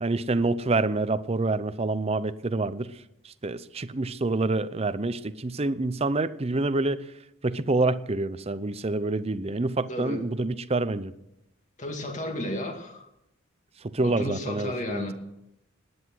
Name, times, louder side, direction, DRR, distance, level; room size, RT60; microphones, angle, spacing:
voice 1, 0.0-2.9 3.2-7.0 7.4-11.1 13.8-15.1, right 2 dB, 30° right, 0.6 m, -27 dB
voice 2, 9.9-10.2 11.8-13.1 14.0-15.1, left 1 dB, 35° left, 2.2 m, -33 dB
19.0 x 9.7 x 6.3 m
head